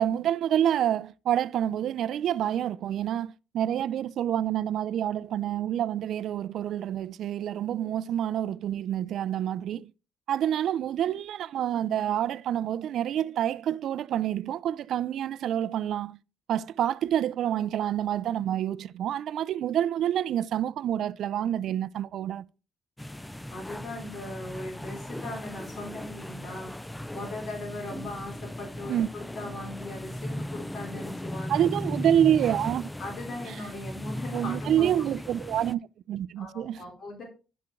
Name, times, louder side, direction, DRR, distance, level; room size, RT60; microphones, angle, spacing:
voice 1, 0.0-9.9 10.3-16.2 16.5-22.4 28.9-29.1 31.5-32.9 33.5-33.6 34.3-35.8 36.1-36.8, right 10 dB, 75° right, 0.4 m, -27 dB
sound 1, 23.0-35.7, left 1 dB, 10° left, 0.4 m, -37 dB
voice 2, 23.5-26.7 27.1-31.6 33.0-35.0 36.4-37.2, left 2 dB, 55° left, 3.5 m, -39 dB
11.0 x 5.7 x 3.7 m
cardioid pair, 90°, 0 cm